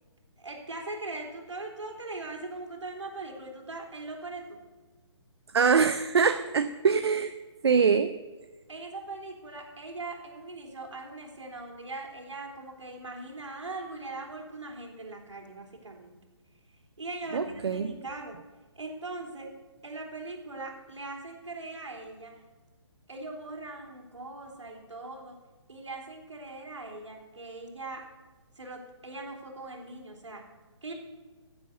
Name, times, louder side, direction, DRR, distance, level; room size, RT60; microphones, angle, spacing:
voice 1, 0.4-4.6 8.7-16.2 17.0-18.4 18.8-19.5 19.8-22.4 23.1-25.4 25.7-28.1 28.6-30.5 30.8-30.9, right 2 dB, 80° right, 1 dB, 3.6 m, -40 dB
voice 2, 5.5-7.3 7.6-8.1 17.3-17.9, right 6 dB, 60° right, 10 dB, 0.7 m, -24 dB
14.5 x 7.9 x 6.8 m, 1.3 s
figure-of-eight pair, 145°, 15 cm